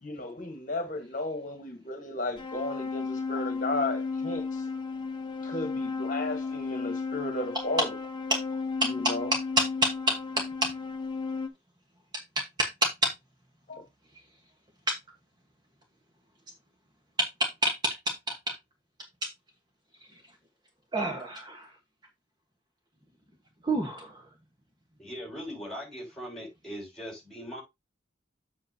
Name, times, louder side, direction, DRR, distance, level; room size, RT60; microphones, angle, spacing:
voice 1, 0.0-4.7 5.4-7.9 8.8-9.3 13.7-13.8, left 2 dB, 45° left, 1.4 m, -34 dB
sound 1, 2.4-11.5, left 4 dB, 25° left, 0.8 m, -34 dB
voice 2, 20.9-21.7 23.6-24.2, right 1 dB, 25° right, 1.3 m, -28 dB
voice 3, 25.0-27.6, equal, 5° left, 5.3 m, -40 dB
7.7 x 7.6 x 2.8 m
head